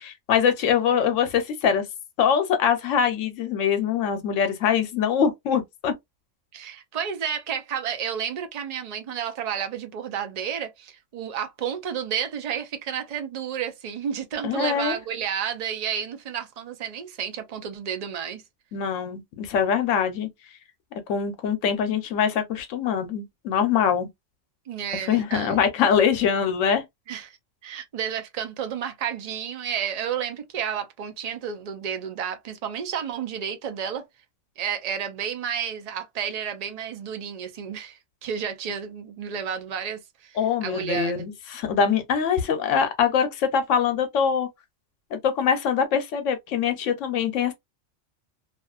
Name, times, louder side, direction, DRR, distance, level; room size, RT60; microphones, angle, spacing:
voice 1, 0.0-1.9 2.2-5.9 14.4-15.0 18.7-20.3 21.1-24.1 25.1-26.8 40.4-44.5 45.1-47.5, left 7 dB, 80° left, 1.0 m, -23 dB
voice 2, 6.5-18.4 24.7-25.6 27.1-27.4 27.6-34.0 34.6-41.2, right 8 dB, 65° right, 0.3 m, -31 dB
2.5 x 2.4 x 2.3 m
omnidirectional pair, 1.3 m